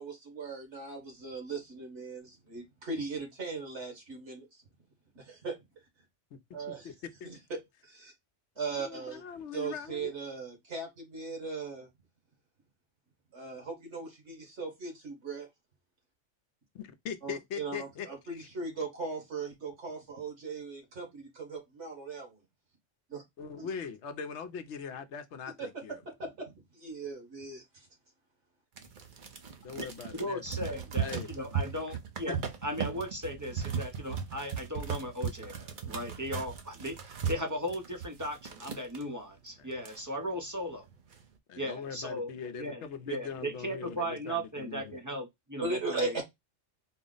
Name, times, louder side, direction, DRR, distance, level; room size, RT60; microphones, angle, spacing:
voice 1, 0.0-4.5 5.1-5.6 6.5-6.9 7.5-8.1 8.6-9.2 9.5-11.9 13.3-15.5 17.2-22.4 23.1-23.2 23.6-23.7 25.6-25.7 26.0-27.9 45.6-46.2, right 4 dB, 65° right, 1.8 m, -38 dB
voice 2, 8.7-10.1 16.7-18.5 18.8-18.9 23.4-26.0 29.6-30.4 31.0-31.3 32.3-32.4 39.6-39.7 41.5-45.0, left 6 dB, 70° left, 0.9 m, -41 dB
sound 1, 28.8-39.0 39.5-39.6 39.8-40.4 40.9-41.2, right 7 dB, 50° right, 0.7 m, -37 dB
voice 3, 30.1-32.4 32.6-40.8 41.6-42.3 42.6-46.2, equal, 25° right, 0.4 m, -37 dB
4.2 x 2.0 x 3.8 m
omnidirectional pair, 1.3 m